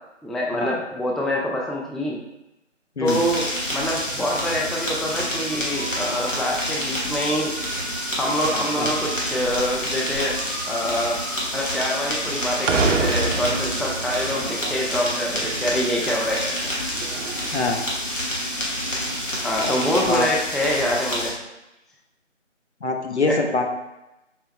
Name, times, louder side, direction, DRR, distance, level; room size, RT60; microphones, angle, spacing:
voice 1, 0.2-2.2 3.0-3.5 3.7-7.6 8.2-10.4 10.7-11.2 11.5-16.5 19.4-21.3 23.3-23.4, equal, ahead, -2 dB, 0.3 m, -25 dB
sound 1, 3.1-21.3, equal, 85° left, 1.4 m, -28 dB
sound 2, 3.9-18.5, right 3 dB, 80° right, 0.5 m, -32 dB
voice 2, 19.6-20.3 22.8-23.7, left 3 dB, 60° left, 3 dB, 0.5 m, -24 dB
4.4 x 2.0 x 3.2 m, 0.94 s
figure-of-eight pair, 175°, 38 cm